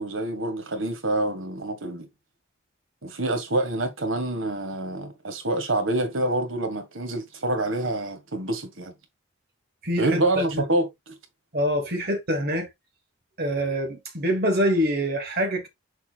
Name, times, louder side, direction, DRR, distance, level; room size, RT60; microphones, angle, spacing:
voice 1, 0.0-2.1 3.0-8.9 10.0-11.2, right 2 dB, 70° right, 1.8 m, -27 dB
voice 2, 9.8-10.4 11.5-12.7 13.4-15.7, equal, 50° right, 1.5 m, -25 dB
7.0 x 6.7 x 2.4 m
head